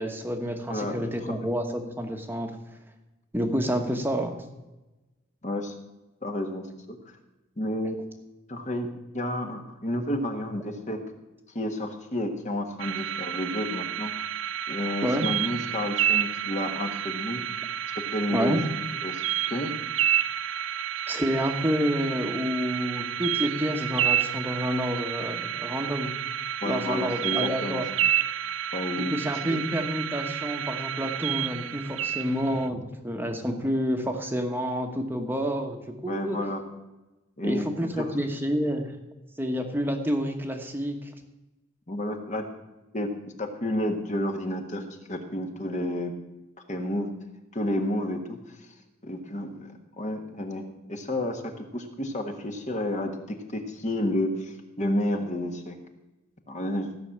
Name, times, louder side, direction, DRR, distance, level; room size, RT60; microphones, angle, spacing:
voice 1, 0.0-2.6 3.3-4.4 15.0-15.3 18.3-18.6 21.1-26.1 26.6-27.9 29.0-36.4 37.4-38.9 39.4-41.1, equal, 10° right, 4 dB, 1.2 m, -29 dB
voice 2, 0.7-1.4 5.4-5.7 6.2-7.0 7.6-8.0 8.5-8.9 9.1-11.0 11.5-14.1 14.7-17.4 17.9-18.6 19.0-19.7 26.6-27.8 28.7-29.2 29.5-29.6 36.1-36.6 37.4-38.1 41.9-42.5 42.9-43.1 43.4-44.8 45.1-46.1 46.7-47.1 47.5-48.4 49.0-55.8 56.5-56.9, left 1 dB, 35° left, 4 dB, 1.6 m, -31 dB
sound 1, 12.8-32.7, right 10 dB, 75° right, 0.6 m, -30 dB
15.5 x 6.4 x 8.7 m, 1.0 s
head